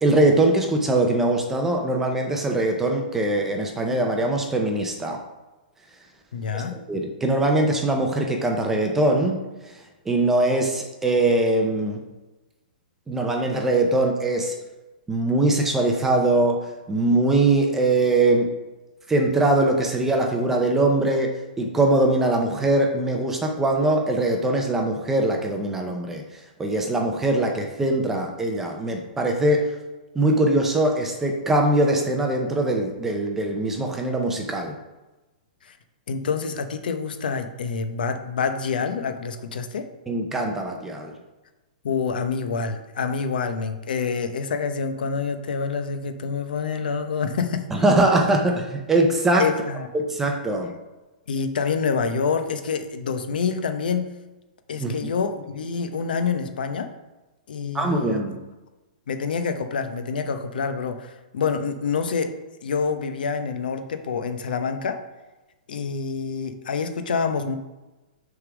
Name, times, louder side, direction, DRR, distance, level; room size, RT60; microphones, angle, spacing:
voice 1, 0.0-5.2 6.5-9.4 10.1-12.0 13.1-14.5 15.1-18.5 19.1-26.2 26.6-29.7 30.2-34.8 40.1-41.1 47.7-49.5 49.9-50.7 54.8-55.1 57.7-58.4, right 2 dB, 5° right, 2 dB, 0.6 m, -22 dB
voice 2, 6.3-6.8 35.6-35.7 36.1-39.9 41.8-47.6 49.4-49.9 51.3-54.1 54.7-56.9 57.5-58.4 59.1-62.3 62.6-65.0 65.7-67.6, left 5 dB, 70° left, 8 dB, 0.8 m, -27 dB
6.6 x 3.6 x 6.0 m, 1.1 s
hypercardioid pair, 170°, 5 cm